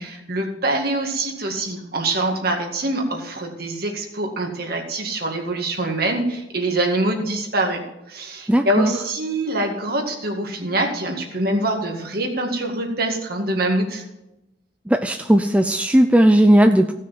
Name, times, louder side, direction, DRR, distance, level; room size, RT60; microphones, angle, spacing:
voice 1, 0.0-7.8 8.1-14.0, right 1 dB, 50° right, 2 dB, 2.0 m, -24 dB
voice 2, 8.5-8.9 14.9-16.9, right 1 dB, 5° right, 7 dB, 0.4 m, -16 dB
16.0 x 6.4 x 5.8 m, 0.94 s
head